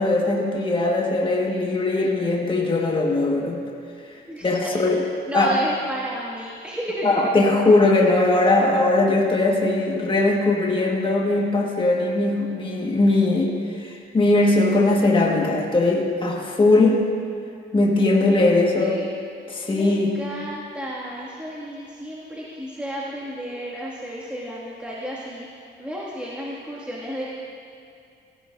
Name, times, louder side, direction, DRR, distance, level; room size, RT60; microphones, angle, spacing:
voice 1, 0.0-3.6 4.1-5.0 5.3-5.5 7.0-17.1 17.7-19.0 19.5-20.1, left 2 dB, 25° left, -1 dB, 1.6 m, -20 dB
voice 2, 4.3-4.7 5.3-7.3 18.3-18.5 18.8-19.1 19.7-27.3, equal, 5° right, -7 dB, 2.1 m, -33 dB
16.5 x 14.5 x 2.6 m, 2.4 s
cardioid pair, 90°, 20 cm